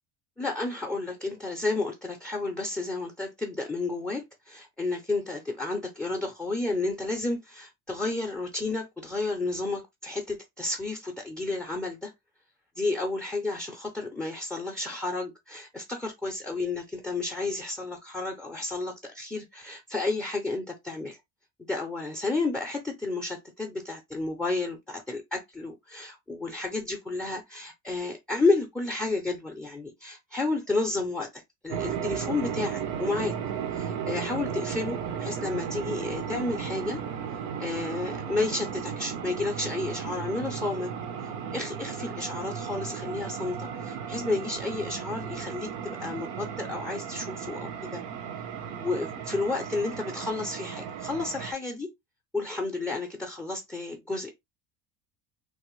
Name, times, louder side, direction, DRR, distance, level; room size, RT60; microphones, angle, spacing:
voice 1, 0.4-12.1 12.8-21.2 21.7-33.3 33.7-37.0 37.6-40.9 41.2-48.0 48.8-51.9 52.3-54.3, left 3 dB, ahead, 0.4 m, -31 dB
sound 1, 31.7-51.5, right 7 dB, 85° right, 0.7 m, -35 dB
3.2 x 2.0 x 3.0 m
cardioid pair, 130°, 42 cm